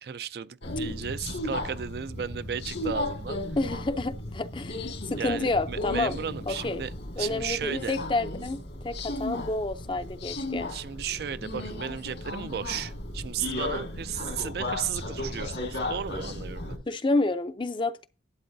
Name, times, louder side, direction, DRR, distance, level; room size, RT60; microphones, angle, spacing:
voice 1, 0.0-3.4 5.2-6.9 7.2-8.0 10.7-16.8, right 8 dB, 60° right, 0.4 m, -35 dB
Subway metro underground, 0.6-16.8, left 1 dB, 80° left, 2.0 m, -35 dB
voice 2, 3.6-6.2 6.5-6.8 7.2-10.7 16.9-18.1, left 2 dB, 25° left, 0.5 m, -29 dB
11.5 x 8.4 x 2.7 m
head